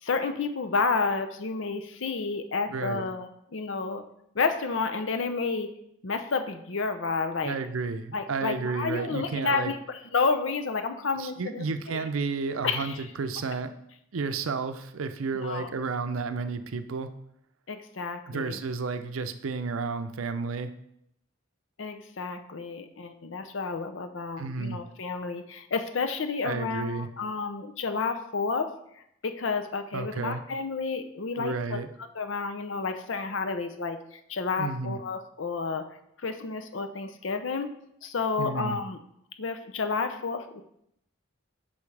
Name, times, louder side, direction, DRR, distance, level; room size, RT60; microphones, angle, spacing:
voice 1, 0.0-4.0 4.3-5.7 6.0-7.6 8.1-12.1 12.6-13.0 15.4-15.7 17.7-18.6 21.8-28.7 29.2-31.8 32.1-37.7 38.0-39.0 39.4-40.6, left 4 dB, 65° left, 7 dB, 0.6 m, -30 dB
voice 2, 2.7-3.0 7.4-9.7 11.2-13.7 14.1-17.1 18.3-20.7 24.4-24.8 26.4-27.1 29.9-30.4 31.4-31.9 34.6-35.0 38.4-38.8, right 4 dB, 90° right, 10 dB, 0.5 m, -32 dB
8.3 x 5.5 x 3.3 m, 0.77 s
head